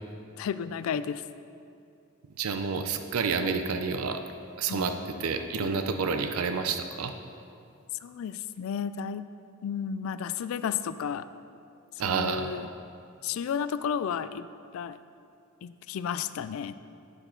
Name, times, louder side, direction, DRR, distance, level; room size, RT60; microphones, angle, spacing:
voice 1, 0.4-1.2 4.7-4.9 5.6-5.9 8.0-9.3 9.6-11.3 12.0-12.7 13.2-14.5 14.7-15.0 15.6-16.8, left 7 dB, 70° left, 14 dB, 0.3 m, -32 dB
voice 2, 2.4-4.2 4.6-7.1 12.0-12.5, right 5 dB, 85° right, 7 dB, 0.5 m, -29 dB
10.0 x 6.2 x 3.9 m, 2.5 s
head